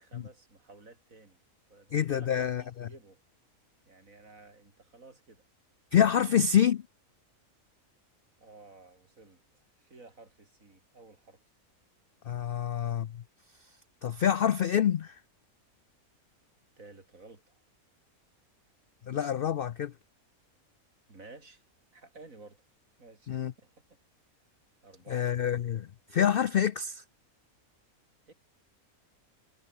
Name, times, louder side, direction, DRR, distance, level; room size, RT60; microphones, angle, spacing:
voice 1, 0.0-1.4 1.7-3.2 3.9-5.4 8.4-11.4 12.6-12.7 16.8-17.6 21.1-21.6 21.9-22.6 23.0-24.0 24.8-25.3 28.3-28.4, right 3 dB, 65° right, 4.2 m, -54 dB
voice 2, 1.9-2.9 5.9-6.8 12.3-13.1 14.0-15.1 19.1-19.9 23.3-23.5 25.1-27.0, left 9 dB, 65° left, 0.5 m, -27 dB
omnidirectional pair, 1.5 m